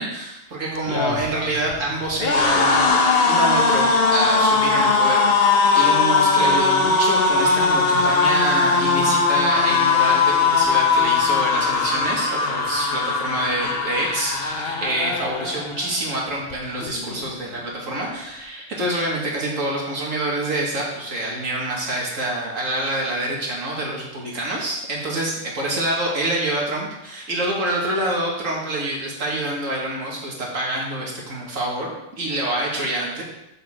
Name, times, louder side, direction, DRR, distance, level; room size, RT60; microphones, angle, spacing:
voice 1, 0.0-33.2, right 1 dB, 90° right, -3 dB, 2.5 m, -26 dB
sound 1, 0.8-16.0 16.3-16.5 16.8-17.6, left 4 dB, 50° left, 1.1 m, -20 dB
13.0 x 6.4 x 3.8 m, 0.88 s
omnidirectional pair, 1.3 m